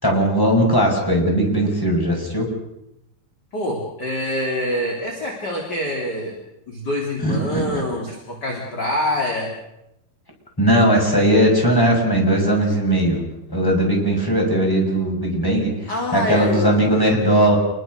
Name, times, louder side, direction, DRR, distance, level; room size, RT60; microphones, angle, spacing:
voice 1, 0.0-2.5 7.2-7.8 10.6-13.2 13.5-17.6, right 1 dB, 5° left, 0 dB, 5.9 m, -18 dB
voice 2, 3.5-6.3 6.7-9.5 15.9-17.0, left 1 dB, 30° left, 0 dB, 3.6 m, -25 dB
28.0 x 21.5 x 6.6 m, 0.85 s
omnidirectional pair, 4.5 m